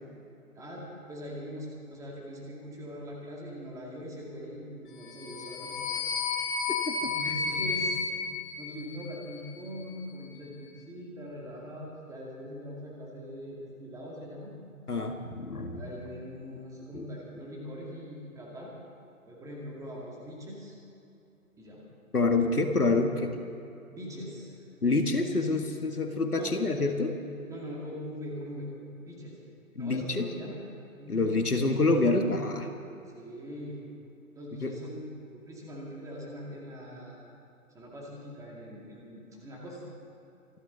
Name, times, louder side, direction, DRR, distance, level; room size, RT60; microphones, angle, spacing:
voice 1, 0.5-6.1 6.4-6.5 7.0-8.0 8.6-14.5 15.7-18.7 19.3-20.7 21.6-21.8 23.9-24.6 26.4-26.6 27.5-28.7 29.0-29.4 29.8-30.6 31.0-31.3 33.0-33.8 34.3-37.3 37.7-39.8, equal, 5° right, -3 dB, 2.3 m, -42 dB
sound 1, 5.0-9.4, left 4 dB, 35° left, 1.7 m, -32 dB
voice 2, 14.9-16.0 16.9-17.0 22.1-23.3 24.8-27.1 29.8-30.3 31.1-32.7 34.6-34.7, left 3 dB, 90° left, 5 dB, 1.9 m, -27 dB
26.0 x 12.0 x 4.0 m, 2.8 s
figure-of-eight pair, 140°, 44 cm